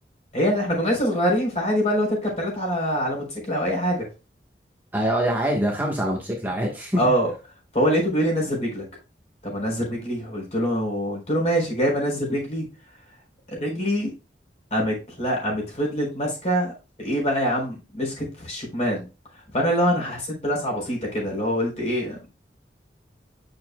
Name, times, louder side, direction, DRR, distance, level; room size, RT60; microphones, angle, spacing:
voice 1, 0.3-4.1 7.0-7.3 7.7-8.8 9.4-12.6 13.5-14.1 14.7-19.0 19.5-22.3, equal, 40° left, -1 dB, 4.1 m, -24 dB
voice 2, 4.9-7.0, right 1 dB, 10° right, -1 dB, 1.2 m, -24 dB
8.6 x 6.7 x 2.2 m, 0.29 s
head